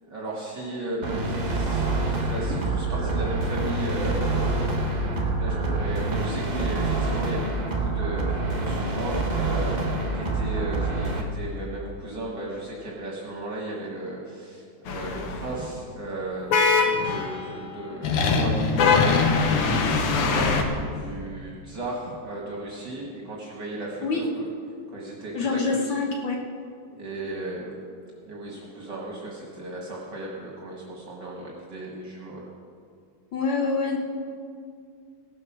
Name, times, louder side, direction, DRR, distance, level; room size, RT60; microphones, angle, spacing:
voice 1, 0.0-4.5 5.0-24.5 24.9-26.0 26.9-27.8 28.2-32.5, right 2 dB, 55° right, -3 dB, 2.1 m, -35 dB
sound 1, 1.0-11.2, right 2 dB, 40° right, 0.6 m, -26 dB
sound 2, 14.9-15.5 16.5-17.5 18.0-20.6, left 4 dB, 85° left, 2.0 m, -22 dB
voice 2, 25.3-26.4 33.3-34.0, left 4 dB, 65° left, 1 dB, 1.7 m, -25 dB
16.5 x 7.9 x 6.0 m, 2.3 s
omnidirectional pair, 2.4 m